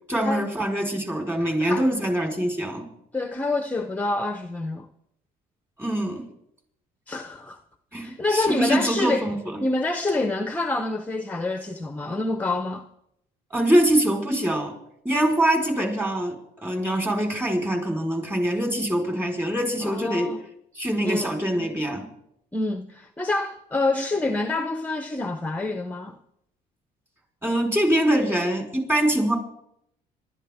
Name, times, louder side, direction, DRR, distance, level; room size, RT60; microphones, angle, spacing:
voice 1, 0.1-2.9 5.8-6.2 7.9-9.6 13.5-14.7 15.0-20.3 20.7-22.1 27.4-29.4, right 1 dB, 15° right, 4.3 m, -24 dB
voice 2, 3.1-4.9 7.1-7.6 8.0-9.3 9.6-12.8 19.8-20.4 21.0-21.3 22.5-26.2, left 2 dB, 10° left, 0.8 m, -27 dB
26.0 x 12.5 x 3.6 m
cardioid pair, 110°, 17 cm